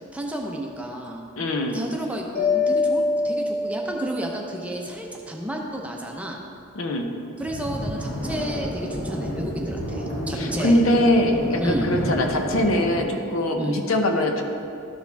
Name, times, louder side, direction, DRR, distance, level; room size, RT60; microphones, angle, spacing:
voice 1, 0.1-1.2 1.7-6.4 7.4-10.8 11.6-11.9 13.6-13.8, right 1 dB, 5° right, 0 dB, 0.7 m, -31 dB
voice 2, 1.4-1.8 6.8-7.1 10.3-14.4, left 1 dB, 85° left, 3 dB, 0.8 m, -22 dB
Mallet percussion, 2.3-4.4, left 3 dB, 30° left, 1.8 m, -24 dB
sound 1, 7.4-13.0, equal, 50° left, 1.7 m, -30 dB
13.0 x 5.0 x 3.4 m, 2.5 s
head